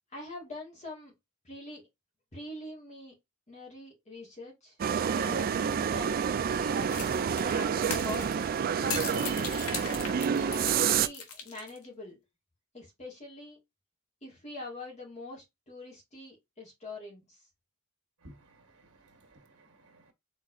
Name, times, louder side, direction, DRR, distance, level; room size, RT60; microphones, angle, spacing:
voice 1, 0.1-1.1 1.4-1.8 2.3-3.1 3.5-4.8 5.1-7.0 7.3-10.0 10.5-12.2 12.7-13.6 14.2-17.5, left 1 dB, 30° left, 2.1 m, -44 dB
sound 1, 4.8-11.1, right 7 dB, 40° right, 0.3 m, -28 dB
sound 2, 6.9-11.9, left 5 dB, 70° left, 1.2 m, -38 dB
voice 2, 18.2-20.1, right 1 dB, 80° right, 1.5 m, -57 dB
4.2 x 3.9 x 2.7 m
head